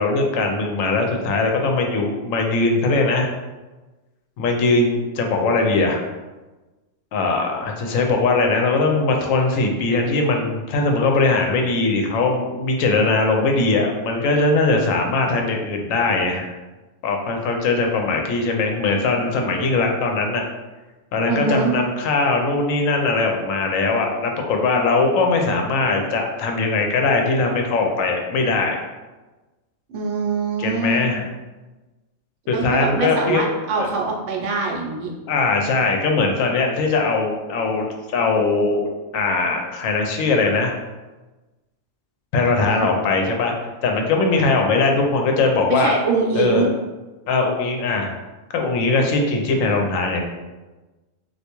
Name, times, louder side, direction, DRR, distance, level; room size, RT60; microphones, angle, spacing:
voice 1, 0.0-3.3 4.4-6.0 7.1-16.5 17.0-20.4 21.1-28.8 30.6-31.2 32.5-33.4 33.8-33.9 35.3-40.8 42.3-43.5 43.8-45.9 46.3-46.7 47.3-48.1 48.5-50.2, left 3 dB, 80° left, 2 dB, 0.9 m, -20 dB
voice 2, 21.3-21.7 29.9-31.2 32.5-35.1 42.6-42.9 45.7-46.7, right 4 dB, 70° right, 0 dB, 0.9 m, -23 dB
3.3 x 2.5 x 2.9 m, 1.2 s
omnidirectional pair, 1.4 m